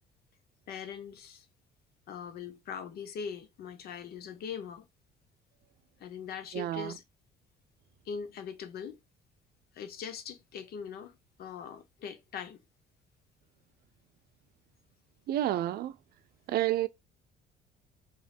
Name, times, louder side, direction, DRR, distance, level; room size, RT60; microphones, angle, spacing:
voice 1, 0.7-1.4 2.1-4.8 6.0-7.0 8.1-9.0 9.7-12.6, left 7 dB, 65° left, 1.0 m, -41 dB
voice 2, 6.5-6.9 15.3-15.9 16.5-16.9, right 13 dB, 65° right, 0.5 m, -29 dB
5.1 x 3.0 x 2.5 m
cardioid pair, 110°, 17 cm